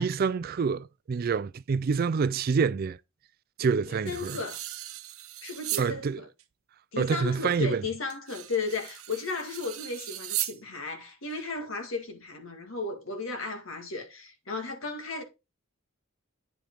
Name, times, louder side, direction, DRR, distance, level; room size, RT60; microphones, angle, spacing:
voice 1, 0.0-3.0 3.6-4.4 5.8-6.2 7.0-7.8, right 5 dB, 45° right, 0.3 m, -27 dB
voice 2, 3.9-4.6 5.4-6.3 6.9-15.2, left 4 dB, 70° left, 2.0 m, -35 dB
sound 1, 4.1-5.9 6.4-6.5 8.1-10.6, right 14 dB, 85° right, 0.9 m, -37 dB
8.9 x 5.0 x 4.6 m
head